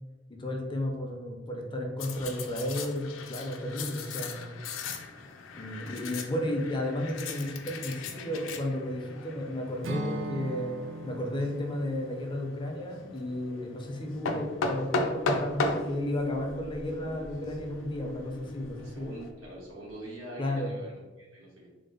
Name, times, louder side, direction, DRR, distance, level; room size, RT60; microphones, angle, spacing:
voice 1, 0.3-4.7 5.5-10.8 11.0-19.1 20.4-20.8, left 1 dB, 25° left, 1 dB, 0.5 m, -33 dB
sound 1, 2.0-19.3, left 3 dB, 90° left, 0.4 m, -38 dB
Acoustic guitar / Strum, 9.8-13.9, right 2 dB, 70° right, 0.4 m, -40 dB
sound 2, 14.3-20.3, right 1 dB, 40° right, 0.8 m, -48 dB
voice 2, 18.8-21.7, right 1 dB, 85° right, -4 dB, 1.1 m, -44 dB
3.2 x 2.0 x 3.8 m, 1.1 s
head